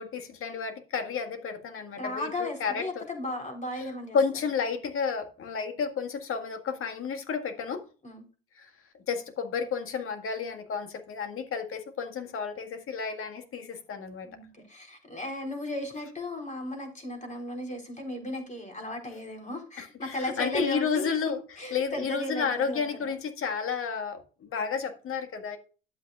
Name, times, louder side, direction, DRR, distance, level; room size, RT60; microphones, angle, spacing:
voice 1, 0.0-3.0 3.7-3.8 4.1-7.8 8.6-8.7 9.1-14.3 19.8-21.4 21.7-25.6, left 6 dB, 50° left, 1.8 m, -31 dB
voice 2, 2.0-4.2 8.0-8.3 14.2-23.1, left 1 dB, 25° left, 3.9 m, -36 dB
11.5 x 8.0 x 2.4 m
hypercardioid pair, 65°, 29 cm